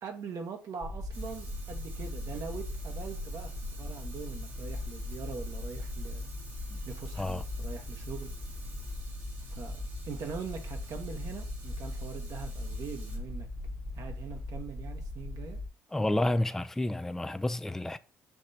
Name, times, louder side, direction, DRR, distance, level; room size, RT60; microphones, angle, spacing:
voice 1, 0.0-6.3 6.8-8.3 9.5-13.5 13.9-15.6, right 6 dB, 55° right, 1.0 m, -42 dB
sound 1, 0.8-15.7, left 2 dB, 30° left, 0.9 m, -39 dB
Fire, 1.1-13.2, right 2 dB, 85° right, 1.6 m, -51 dB
voice 2, 15.9-18.0, left 1 dB, 5° left, 0.3 m, -30 dB
5.8 x 3.1 x 2.7 m
hypercardioid pair, 60°, 7 cm